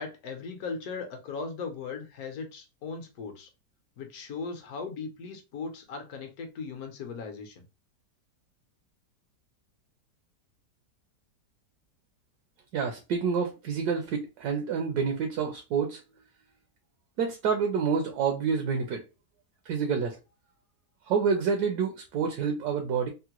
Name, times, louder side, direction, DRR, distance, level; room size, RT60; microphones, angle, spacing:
voice 1, 0.0-3.5 4.0-7.6, left 4 dB, 65° left, 1.1 m, -38 dB
voice 2, 12.7-16.0 17.2-19.0 19.7-20.2 21.1-23.1, right 6 dB, 70° right, 1.1 m, -28 dB
3.6 x 2.1 x 2.9 m
omnidirectional pair, 1.9 m